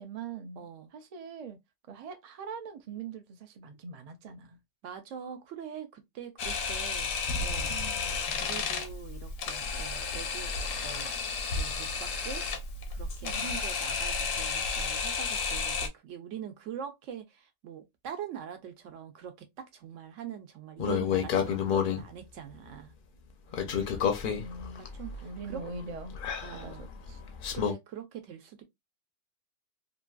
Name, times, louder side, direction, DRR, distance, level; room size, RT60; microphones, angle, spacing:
voice 1, 0.0-1.6 1.9-4.6 7.7-8.1 13.2-13.6 24.2-24.8 25.2-26.2 26.5-26.7 27.1-27.2, right 4 dB, 50° right, 0.4 m, -42 dB
voice 2, 0.6-0.9 4.8-7.1 7.4-7.8 8.4-10.5 10.8-12.4 12.9-22.9 24.8-25.6 26.4-26.9 27.5-28.6, right 8 dB, 75° right, 1.0 m, -43 dB
Camera, 6.4-15.9, left 4 dB, 85° left, 1.1 m, -32 dB
sound 1, 20.8-22.0 23.5-27.7, left 8 dB, 60° left, 0.6 m, -30 dB
2.9 x 2.5 x 2.2 m
omnidirectional pair, 1.3 m